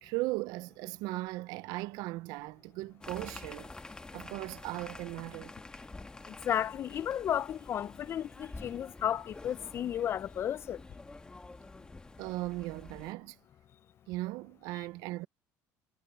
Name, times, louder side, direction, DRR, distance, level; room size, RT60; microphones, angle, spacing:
voice 1, 0.0-3.7 4.1-5.5 12.2-13.4 14.1-15.3, right 20 dB, 80° right, 0.5 m, -37 dB
sound 1, 3.0-13.1, left 3 dB, 10° left, 1.6 m, -48 dB
voice 2, 6.3-10.8, left 10 dB, 40° left, 0.3 m, -33 dB
cardioid pair, 135°, 7 cm